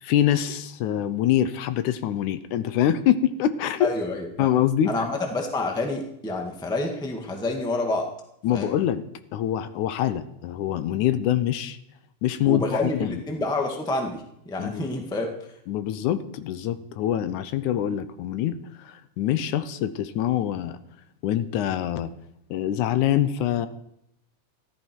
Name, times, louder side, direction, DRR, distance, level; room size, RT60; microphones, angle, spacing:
voice 1, 0.0-3.9 4.4-4.9 8.4-9.0 9.3-11.8 12.2-13.2 14.6-14.9 15.7-20.8 21.2-22.1 22.5-23.7, left 11 dB, 80° left, 12 dB, 2.3 m, -25 dB
voice 2, 3.8-4.5 4.9-8.1 8.5-8.7 12.5-15.3, left 2 dB, ahead, 2 dB, 0.9 m, -28 dB
14.5 x 13.5 x 4.5 m, 0.78 s
omnidirectional pair, 3.5 m